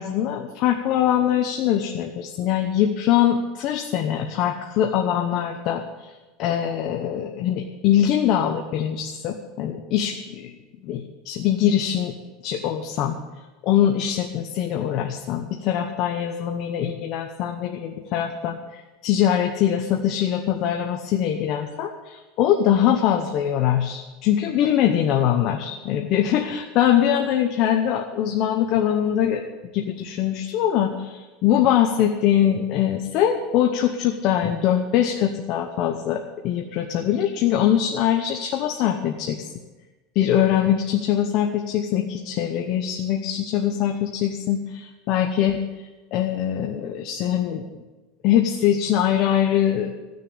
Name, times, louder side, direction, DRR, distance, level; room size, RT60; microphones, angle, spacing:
voice 1, 0.0-6.1 6.4-10.5 10.8-12.1 12.4-13.2 13.6-29.4 29.7-39.4 40.1-45.7 46.1-47.6 48.2-49.9, left 10 dB, 40° left, 3 dB, 1.0 m, -22 dB
15.5 x 6.6 x 8.7 m, 1.2 s
supercardioid pair, 170°, 0 cm